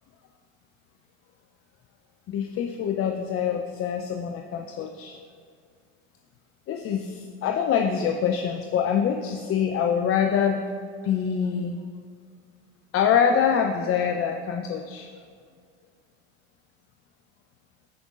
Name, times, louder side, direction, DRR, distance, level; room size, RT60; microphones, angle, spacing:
voice 1, 2.3-5.2 6.7-10.6 11.0-11.7 12.9-15.1, left 7 dB, 40° left, 4 dB, 0.6 m, -25 dB
15.0 x 5.2 x 2.5 m, 2.1 s
hypercardioid pair, 85°, 33 cm